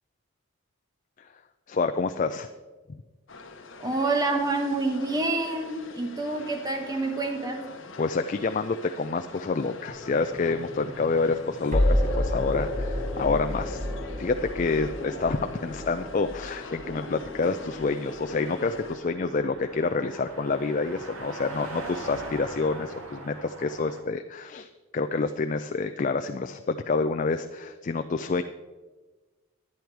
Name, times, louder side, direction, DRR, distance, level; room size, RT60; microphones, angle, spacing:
voice 1, 1.7-2.5 8.0-13.9 14.2-28.4, left 4 dB, 35° left, 8 dB, 0.3 m, -28 dB
sound 1, 3.3-19.0, left 3 dB, 60° left, 0.9 m, -44 dB
voice 2, 3.8-7.7, right 2 dB, 15° right, 4 dB, 1.0 m, -27 dB
sound 2, 9.9-20.9, left 1 dB, 35° right, 2.2 m, -31 dB
Car passing by, 13.9-24.0, right 2 dB, 85° right, 1.7 m, -44 dB
11.0 x 10.0 x 4.6 m, 1.3 s
head